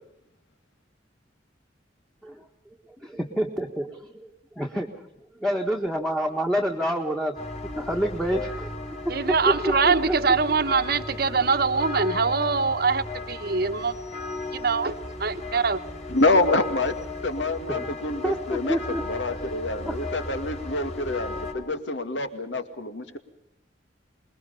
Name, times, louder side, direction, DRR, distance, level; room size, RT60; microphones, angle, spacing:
voice 1, 3.0-4.3 4.5-5.1 5.4-7.4 7.7-8.7 9.0-9.2 9.5-10.4 17.3-19.1 19.8-20.2, equal, ahead, 1 dB, 1.6 m, -28 dB
sound 1, 7.4-21.5, left 2 dB, 35° left, 4.2 m, -35 dB
voice 2, 9.1-13.9 14.5-14.9 15.2-15.8, right 4 dB, 55° right, 10 dB, 1.1 m, -23 dB
voice 3, 16.1-16.9 17.2-18.8 19.1-23.2, left 2 dB, 75° left, 8 dB, 2.2 m, -26 dB
26.5 x 21.0 x 5.6 m, 0.82 s
head